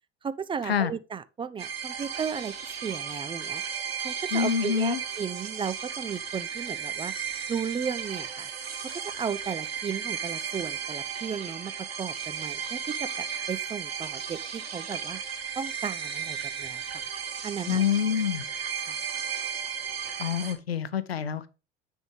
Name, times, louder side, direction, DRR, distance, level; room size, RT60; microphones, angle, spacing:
voice 1, 0.2-2.5 2.8-3.6 4.0-7.1 7.5-8.5 8.9-15.2 15.6-17.1 17.4-17.8 18.8-19.1, right 6 dB, 15° right, 0.4 m, -35 dB
sound 1, 1.6-20.5, right 7 dB, 75° right, 1.5 m, -35 dB
voice 2, 4.3-5.0 17.7-18.4 20.2-21.5, left 8 dB, 80° left, 0.7 m, -26 dB
9.5 x 3.5 x 5.0 m
figure-of-eight pair, 65°, 30 cm